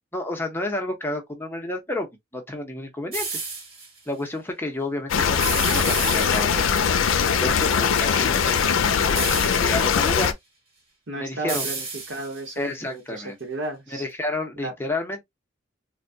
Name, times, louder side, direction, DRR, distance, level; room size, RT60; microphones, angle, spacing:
voice 1, 0.1-2.1 2.3-3.4 4.1-10.3 11.2-11.7 12.6-13.4 13.9-15.2, left 2 dB, 10° left, 0.8 m, -31 dB
sound 1, 3.1-3.9 5.4-6.8 9.1-9.9 11.5-12.5, right 4 dB, 30° right, 1.4 m, -32 dB
sound 2, 5.1-10.3, left 7 dB, 80° left, 0.4 m, -21 dB
voice 2, 11.1-14.0 14.6-14.7, right 2 dB, 65° right, 1.0 m, -33 dB
3.4 x 2.2 x 2.7 m
head